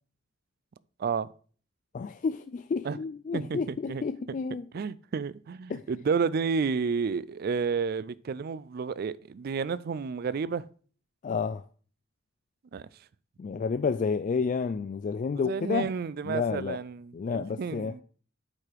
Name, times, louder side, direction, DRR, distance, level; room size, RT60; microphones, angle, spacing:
voice 1, 1.9-4.7 5.7-5.8 11.2-11.6 13.4-15.9 16.2-16.8 17.1-17.9, left 5 dB, 40° left, 0.3 m, -30 dB
voice 2, 3.3-4.0 4.7-10.6 12.7-12.9 15.4-18.0, right 5 dB, 55° right, 0.4 m, -31 dB
8.4 x 4.9 x 4.6 m
head